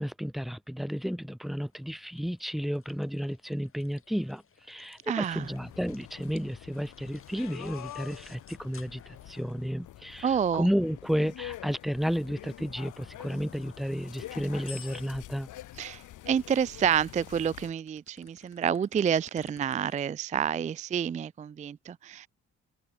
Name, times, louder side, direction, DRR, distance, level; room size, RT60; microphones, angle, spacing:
voice 1, 0.0-4.4 4.7-15.5, equal, ahead, 1.5 m, -32 dB
sound 1, 1.5-9.8 10.7-15.5 17.1-20.0, left 7 dB, 45° left, 5.0 m, -55 dB
voice 2, 5.1-5.5 10.2-10.7 15.7-22.3, right 8 dB, 25° right, 0.3 m, -29 dB
sound 2, 5.3-17.7, left 14 dB, 80° left, 2.5 m, -46 dB
open air
cardioid pair, 90°, 30 cm